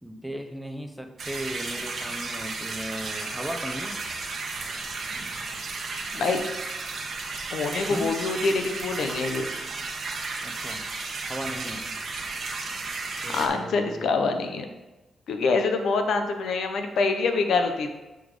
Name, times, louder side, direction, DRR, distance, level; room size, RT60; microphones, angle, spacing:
voice 1, 0.0-4.0 7.9-8.2 10.4-10.9 11.3-11.8 13.2-14.2, equal, 5° right, 5 dB, 0.7 m, -36 dB
sound 1, 1.2-13.5, right 3 dB, 55° right, 1.1 m, -34 dB
voice 2, 7.5-9.4 13.3-14.7 15.3-17.9, left 4 dB, 75° left, 6 dB, 0.7 m, -25 dB
7.0 x 4.0 x 4.7 m, 1.1 s
cardioid pair, 75°, 0 cm